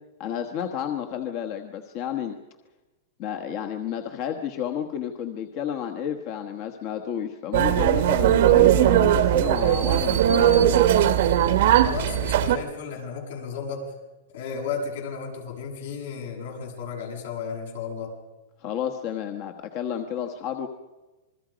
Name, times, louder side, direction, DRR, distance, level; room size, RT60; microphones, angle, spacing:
voice 1, 0.2-2.4 3.2-10.8 18.6-20.7, left 9 dB, 40° left, 5 dB, 1.2 m, -31 dB
sound 1, 7.5-12.6, right 11 dB, 65° right, 1.2 m, -19 dB
voice 2, 11.8-13.8 14.3-18.1, left 6 dB, 75° left, 0 dB, 7.6 m, -33 dB
27.0 x 21.5 x 5.2 m, 1.1 s
supercardioid pair, 155°, 0 cm